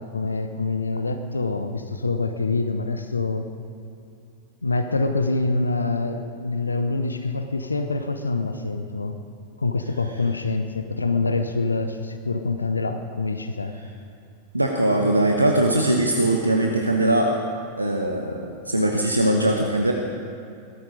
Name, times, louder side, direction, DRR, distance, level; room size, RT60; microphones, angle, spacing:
voice 1, 0.0-3.5 4.6-9.2 9.6-13.7, left 3 dB, 80° left, 8 dB, 0.7 m, -25 dB
voice 2, 14.5-17.4 17.8-19.9, right 1 dB, 85° right, 1 dB, 1.0 m, -21 dB
17.0 x 13.5 x 5.1 m, 2.6 s
figure-of-eight pair, 90°, 0 cm